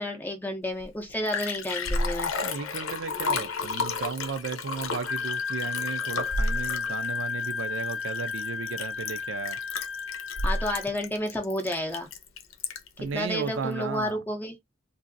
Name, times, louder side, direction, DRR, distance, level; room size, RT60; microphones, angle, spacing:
voice 1, 0.0-2.3 10.4-12.1 13.0-14.6, left 1 dB, 10° left, 0.5 m, -31 dB
Liquid, 0.8-0.9 1.1-13.0 13.5-13.6, left 3 dB, 90° left, 0.7 m, -32 dB
voice 2, 2.4-9.6 13.0-14.2, right 5 dB, 70° right, 0.4 m, -34 dB
Wind instrument woodwind instrument, 5.1-10.9, left 5 dB, 60° left, 0.5 m, -33 dB
3.0 x 2.6 x 2.5 m
head